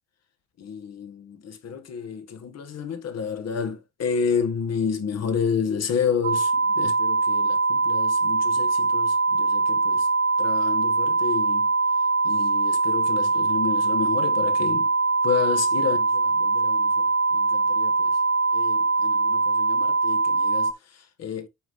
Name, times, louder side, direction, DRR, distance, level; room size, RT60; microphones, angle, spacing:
voice 1, 0.6-10.1 10.4-11.7 12.2-14.9 15.2-18.2 18.5-21.5, left 6 dB, 50° left, 1.7 m, -30 dB
sound 1, 6.2-20.7, right 3 dB, 35° right, 0.5 m, -22 dB
9.0 x 3.9 x 3.2 m
cardioid pair, 95°, 32 cm